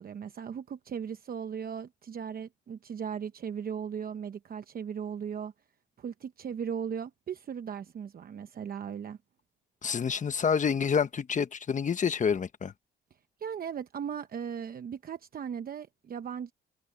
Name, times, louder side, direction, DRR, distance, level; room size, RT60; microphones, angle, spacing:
voice 1, 0.0-5.5 6.0-9.2 13.4-16.5, right 7 dB, 50° right, 0.9 m, -37 dB
voice 2, 9.8-12.7, left 6 dB, 40° left, 1.2 m, -28 dB
cardioid pair, 90°, 20 cm